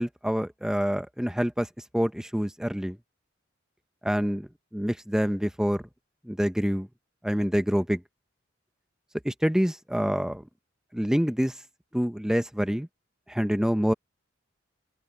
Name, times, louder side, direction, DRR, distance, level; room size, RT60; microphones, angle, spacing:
voice 1, 0.0-1.7 1.9-3.0 4.0-5.8 6.2-6.9 7.2-8.0 9.2-10.4 10.9-11.6 11.9-12.9 13.3-13.9, equal, 5° right, 0.7 m, -26 dB
head